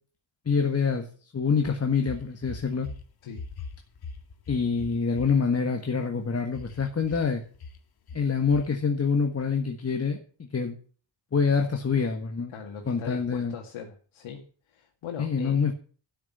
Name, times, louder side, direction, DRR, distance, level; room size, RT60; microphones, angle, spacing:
voice 1, 0.5-1.1 1.3-2.9 4.5-7.4 8.1-10.2 10.5-10.8 11.3-12.5 12.9-13.5 15.2-15.7, left 5 dB, 30° left, 4 dB, 1.7 m, -26 dB
sound 1, 1.6-3.0 3.3-5.3 6.5-7.3 7.5-7.8 8.1-8.3 8.5-8.7, left 4 dB, 50° left, 1.9 m, -40 dB
voice 2, 12.5-15.6, left 7 dB, 85° left, 1 dB, 2.4 m, -40 dB
12.0 x 6.7 x 9.4 m, 0.41 s
cardioid pair, 120°, 48 cm